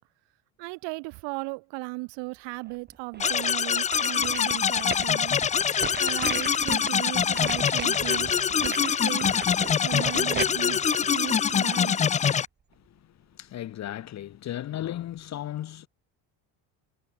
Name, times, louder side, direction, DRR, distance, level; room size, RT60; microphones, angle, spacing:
voice 1, 0.6-5.4 6.0-9.3 9.8-12.0, right 29 dB, 90° right, 5.5 m, -36 dB
sound 1, 2.7-3.5 3.9-12.0 12.4-12.5, right 6 dB, 25° right, 4.7 m, -37 dB
sound 2, 3.2-12.5, left 7 dB, 20° left, 0.4 m, -24 dB
sound 3, 4.0-7.1 7.5-7.6 7.7-9.0 9.4-10.5, left 15 dB, 55° left, 4.1 m, -51 dB
voice 2, 12.7-15.9, left 12 dB, 40° left, 1.1 m, -36 dB
cardioid pair, 145°, 42 cm